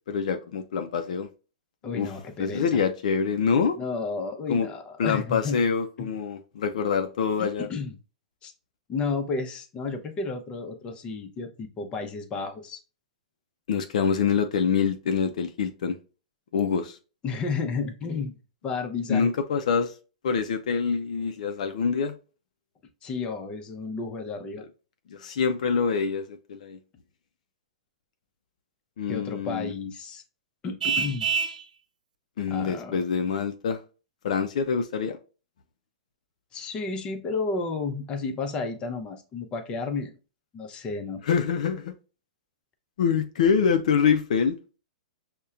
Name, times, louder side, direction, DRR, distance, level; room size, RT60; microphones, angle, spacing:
voice 1, 0.1-1.3 2.0-2.1 2.4-3.8 4.5-4.7 5.0-7.7 13.7-16.0 16.5-17.0 19.1-19.9 20.2-22.1 25.1-26.8 29.0-29.7 32.4-33.8 34.2-35.2 41.2-42.0 43.0-44.6, left 6 dB, 65° left, 0.4 m, -25 dB
voice 2, 1.8-2.8 3.8-5.6 6.0-6.1 7.4-8.0 8.4-8.5 8.9-12.8 17.2-18.3 18.6-19.3 23.0-24.6 29.1-30.2 30.6-31.3 32.5-33.0 36.5-40.2 40.5-41.2, left 4 dB, 25° left, 0.6 m, -32 dB
Vehicle horn car horn honking, 30.8-31.6, right 6 dB, 80° right, 0.3 m, -26 dB
5.3 x 2.1 x 2.3 m
hypercardioid pair, 120°, 4 cm